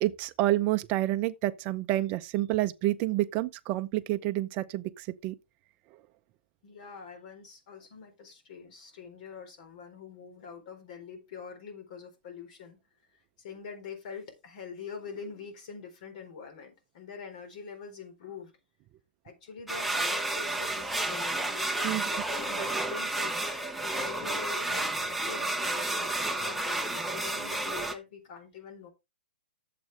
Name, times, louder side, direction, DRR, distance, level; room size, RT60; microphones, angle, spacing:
voice 1, 0.0-5.4 21.8-22.0, right 16 dB, 30° right, 0.7 m, -29 dB
voice 2, 6.6-12.8 13.1-18.5 19.2-28.9, left 6 dB, 50° left, 4.1 m, -44 dB
sound 1, 19.7-27.9, right 2 dB, ahead, 0.9 m, -31 dB
10.5 x 7.7 x 3.4 m
hypercardioid pair, 145°, 5 cm